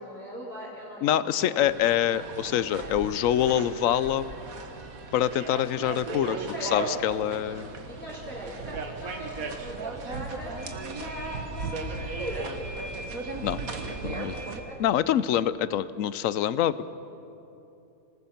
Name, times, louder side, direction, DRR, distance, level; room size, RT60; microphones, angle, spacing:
voice 1, 0.0-1.6 6.1-7.0 7.6-10.5 10.9-12.5 13.7-14.4 14.7-14.9, equal, 5° left, -8 dB, 4.3 m, -40 dB
voice 2, 1.0-4.2 5.1-6.4 6.6-7.7 13.4-13.6 14.0-14.3 14.8-16.9, left 11 dB, 65° left, 16 dB, 1.0 m, -25 dB
sound 1, 1.6-14.6, right 3 dB, 70° right, 1.9 m, -37 dB
26.5 x 19.0 x 5.9 m, 2.8 s
omnidirectional pair, 1.6 m